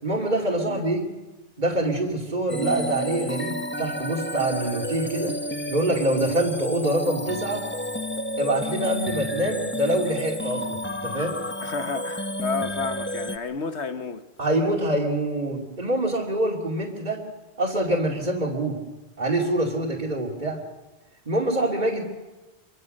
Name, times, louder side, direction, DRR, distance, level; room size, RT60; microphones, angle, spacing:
voice 1, 0.0-1.0 1.6-5.3 5.7-7.6 8.4-11.3 14.4-17.2 17.6-18.8 19.2-20.6 21.3-22.0, right 1 dB, 45° right, 2.9 m, -25 dB
sound 1, 2.5-13.4, left 1 dB, 10° left, 0.9 m, -31 dB
voice 2, 11.6-14.2, left 4 dB, 90° left, 1.6 m, -31 dB
26.5 x 23.5 x 6.6 m
omnidirectional pair, 1.1 m